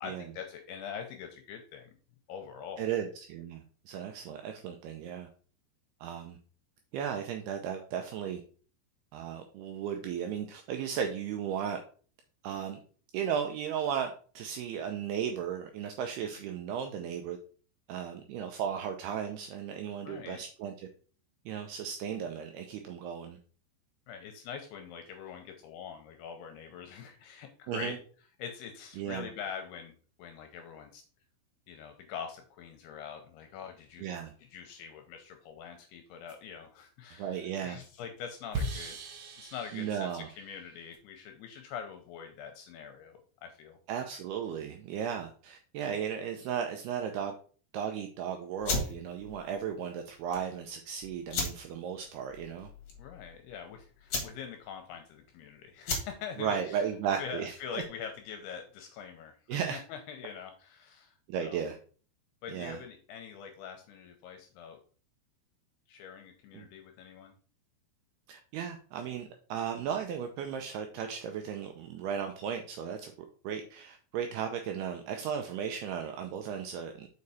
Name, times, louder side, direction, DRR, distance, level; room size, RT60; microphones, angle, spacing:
voice 1, 0.0-1.9 2.3-2.9 20.0-20.4 24.1-29.9 30.2-31.0 31.7-34.1 34.4-39.0 39.4-43.8 53.0-61.6 62.4-64.8 65.9-67.3, left 7 dB, 80° left, 5 dB, 2.4 m, -44 dB
voice 2, 2.8-5.3 6.0-6.4 6.9-8.4 9.1-11.8 12.4-12.8 13.1-17.4 17.9-20.9 21.5-23.4 27.7-28.0 29.0-29.3 34.0-34.3 37.2-37.8 39.7-40.3 43.9-47.3 47.7-52.7 56.4-57.8 59.5-59.8 61.3-61.8 62.5-62.8 66.5-66.7 68.3-73.1 73.4-77.1, right 8 dB, 80° right, 5 dB, 2.3 m, -35 dB
sound 1, 34.2-34.3 36.3-36.4 38.5-41.0, right 2 dB, 60° right, 2.3 m, -39 dB
sound 2, 48.6-58.1, left 3 dB, 60° left, 1.6 m, -38 dB
6.6 x 4.8 x 4.1 m, 0.42 s
omnidirectional pair, 5.3 m